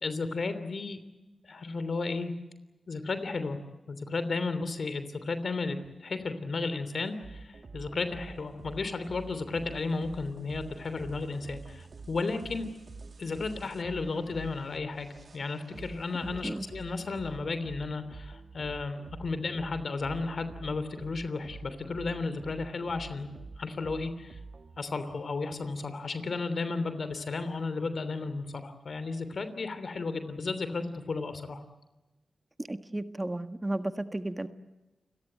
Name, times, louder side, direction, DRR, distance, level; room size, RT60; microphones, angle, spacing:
voice 1, 0.0-1.0 1.4-2.3 2.9-3.6 3.9-12.7 13.2-23.3 23.6-24.4 24.8-31.6, left 3 dB, 65° left, 11 dB, 3.2 m, -34 dB
sound 1, 7.2-24.8, right 3 dB, 60° right, 2.1 m, -47 dB
voice 2, 32.7-34.5, right 1 dB, 20° right, 9 dB, 1.6 m, -33 dB
29.5 x 18.0 x 9.3 m, 1.1 s
cardioid pair, 50°, 0 cm